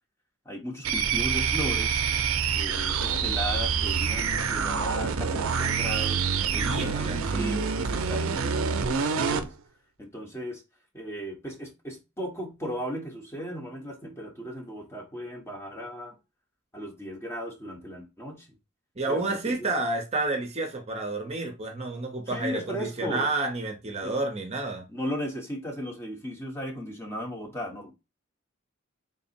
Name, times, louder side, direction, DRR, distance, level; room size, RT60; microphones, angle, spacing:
voice 1, 0.4-2.0 2.5-6.2 6.5-9.5 10.0-10.6 10.9-16.2 16.7-18.5 19.1-19.7 22.3-23.3 24.0-24.2 24.9-27.9, equal, 10° left, 0.9 m, -36 dB
sound 1, 0.8-9.5, right 6 dB, 80° right, 0.5 m, -27 dB
voice 2, 6.5-7.3 19.0-24.8, right 2 dB, 30° right, 0.7 m, -30 dB
3.7 x 2.0 x 4.2 m
head